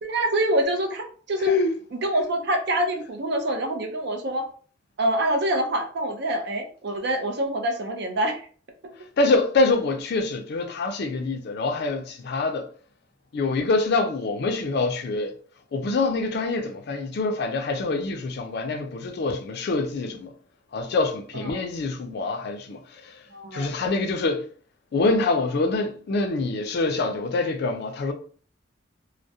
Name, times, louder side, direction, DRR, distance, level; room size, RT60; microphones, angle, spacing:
voice 1, 0.0-1.6 1.9-4.5 5.0-8.5 9.2-9.3 21.3-21.6 23.3-23.7, right 1 dB, 60° right, 0.5 m, -26 dB
voice 2, 1.4-1.7 9.2-12.7 13.3-15.3 15.7-20.3 20.7-22.8 23.5-24.4 24.9-28.1, left 3 dB, 55° left, 0.4 m, -25 dB
2.3 x 2.0 x 2.7 m
head